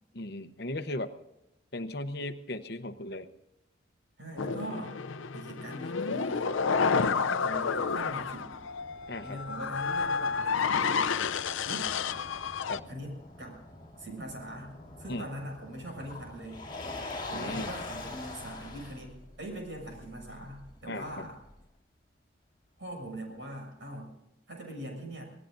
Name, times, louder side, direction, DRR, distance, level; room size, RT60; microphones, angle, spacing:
voice 1, 0.1-1.1 1.7-3.3 9.1-9.4 12.7-12.8 15.1-15.3 17.3-17.7 20.9-21.3, left 1 dB, 55° left, 9 dB, 0.9 m, -37 dB
voice 2, 4.2-4.9 5.3-6.5 7.2-8.6 9.2-11.0 11.6-11.9 12.9-13.6 14.0-16.6 17.3-21.4 22.8-24.2 24.5-25.2, right 1 dB, 65° right, 1 dB, 7.1 m, -42 dB
sound 1, 4.4-12.8, left 5 dB, 85° left, 0.6 m, -30 dB
Motor vehicle (road), 7.3-21.5, left 2 dB, 25° left, 4.4 m, -45 dB
26.5 x 18.5 x 2.6 m, 0.89 s
head